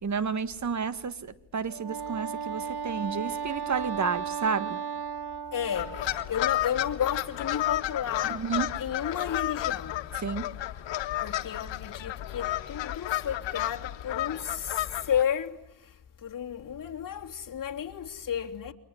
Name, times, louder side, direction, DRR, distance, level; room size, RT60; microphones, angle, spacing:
voice 1, 0.0-4.8 8.2-8.7 10.2-10.5, right 5 dB, 40° right, 1.8 m, -31 dB
Wind instrument woodwind instrument, 1.7-6.4, right 6 dB, 60° right, 1.3 m, -35 dB
voice 2, 5.5-5.9 6.3-8.4 8.8-9.9 11.2-14.7 15.1-15.5 16.2-18.7, left 9 dB, 50° left, 3.0 m, -32 dB
sound 1, 5.7-15.2, left 14 dB, 85° left, 1.7 m, -32 dB
30.0 x 24.0 x 8.0 m
cardioid pair, 95°, 43 cm